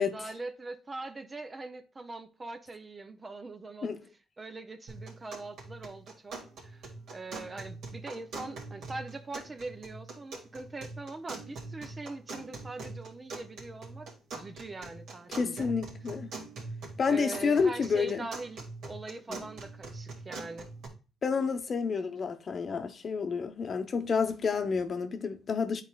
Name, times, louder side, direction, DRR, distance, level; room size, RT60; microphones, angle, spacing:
voice 1, 0.0-3.9 4.4-15.7 17.1-20.7, right 3 dB, 25° right, 0.6 m, -42 dB
sound 1, 4.9-20.9, right 3 dB, 75° right, 2.2 m, -44 dB
voice 2, 15.3-16.3 17.0-18.3 19.3-19.4 21.2-25.8, left 5 dB, 45° left, 0.8 m, -29 dB
10.0 x 4.1 x 2.4 m
cardioid pair, 90°, 0 cm